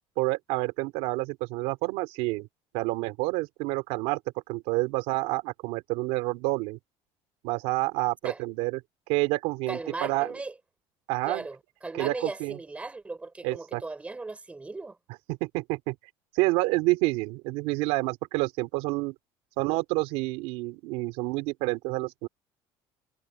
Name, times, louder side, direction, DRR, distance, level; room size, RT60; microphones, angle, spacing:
voice 1, 0.2-2.5 2.7-4.2 4.5-6.8 7.4-8.8 9.1-10.3 11.1-11.4 11.9-12.6 13.4-13.8 15.3-16.0 16.3-19.2 19.6-22.3, right 22 dB, 85° right, 3.5 m, -28 dB
voice 2, 9.7-10.5 11.3-15.0, right 3 dB, 10° right, 6.6 m, -37 dB
cardioid pair, 155°, 11 cm